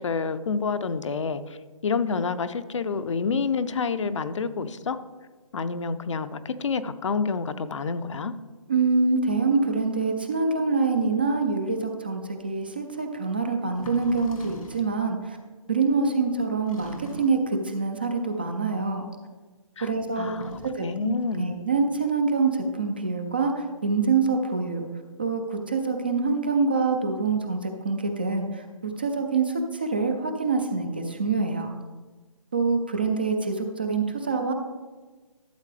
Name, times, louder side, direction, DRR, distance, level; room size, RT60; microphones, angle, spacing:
voice 1, 0.0-5.0 5.5-8.3 19.8-21.5, left 5 dB, 55° left, 12 dB, 0.6 m, -28 dB
voice 2, 8.7-15.4 15.7-19.1 19.8-20.3 20.8-24.8 25.2-31.7 32.5-34.5, right 4 dB, 15° right, 5 dB, 0.3 m, -25 dB
sound 1, 12.6-12.7 13.7-15.0 16.7-17.6 20.2-20.9, left 2 dB, 85° left, 1.9 m, -41 dB
12.0 x 7.3 x 3.3 m, 1.3 s
hypercardioid pair, 165°, 18 cm